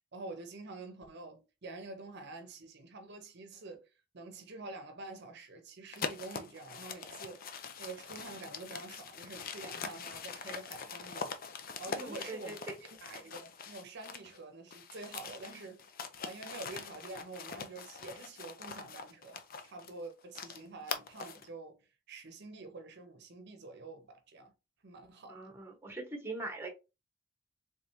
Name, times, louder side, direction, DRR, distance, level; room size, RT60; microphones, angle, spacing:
voice 1, 0.1-11.5 11.8-12.5 13.0-15.9 16.2-24.5 24.8-25.5, right 3 dB, 55° right, 0.7 m, -47 dB
sound 1, 5.9-14.4 14.7-21.5, left 5 dB, 45° left, 0.5 m, -43 dB
voice 2, 11.9-12.6 25.3-26.7, right 2 dB, 10° right, 0.9 m, -42 dB
3.5 x 3.2 x 2.7 m
head